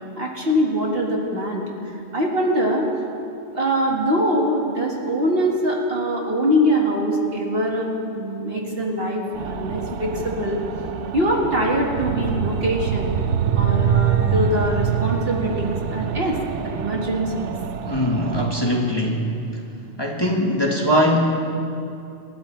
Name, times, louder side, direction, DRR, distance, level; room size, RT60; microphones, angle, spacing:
voice 1, 0.2-1.6 2.1-2.9 3.5-10.6 11.1-13.1 13.6-17.6, equal, 50° right, -1 dB, 2.2 m, -23 dB
sound 1, 9.3-18.4, right 8 dB, 70° right, 1.0 m, -25 dB
voice 2, 17.8-19.4 20.0-21.3, equal, 20° left, -2 dB, 1.5 m, -21 dB
27.5 x 12.5 x 3.4 m, 2.6 s
omnidirectional pair, 1.3 m